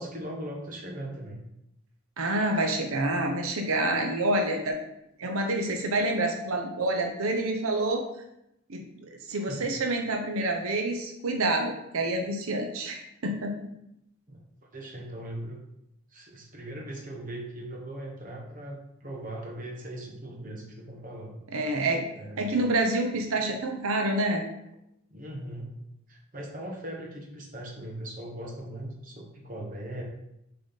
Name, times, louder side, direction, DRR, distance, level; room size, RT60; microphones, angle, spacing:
voice 1, 0.0-1.4 9.5-9.7 14.3-14.4 14.7-15.6 16.1-21.4 22.1-22.6 25.1-25.7 26.1-30.0, right 1 dB, 40° right, 0 dB, 1.1 m, -39 dB
voice 2, 2.2-4.8 5.2-8.1 8.7-13.5 21.5-22.1 22.4-24.4, right 2 dB, 90° right, 3 dB, 0.8 m, -27 dB
6.7 x 3.9 x 4.0 m, 0.82 s
head